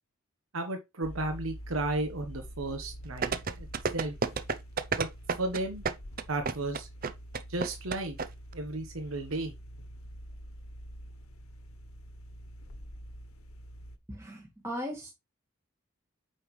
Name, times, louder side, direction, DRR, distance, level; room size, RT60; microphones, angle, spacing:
voice 1, 0.5-3.3 3.6-3.7 3.9-4.1 5.0-5.1 5.4-5.8 6.3-6.9 7.5-8.2 8.5-9.5, right 2 dB, 75° right, 1.2 m, -33 dB
sound 1, 1.0-14.0, equal, 90° left, 1.1 m, -46 dB
sound 2, 3.2-8.3 8.5-8.6, right 5 dB, 45° right, 0.6 m, -30 dB
voice 2, 14.1-15.1, equal, 15° right, 1.7 m, -38 dB
8.6 x 5.6 x 3.2 m
head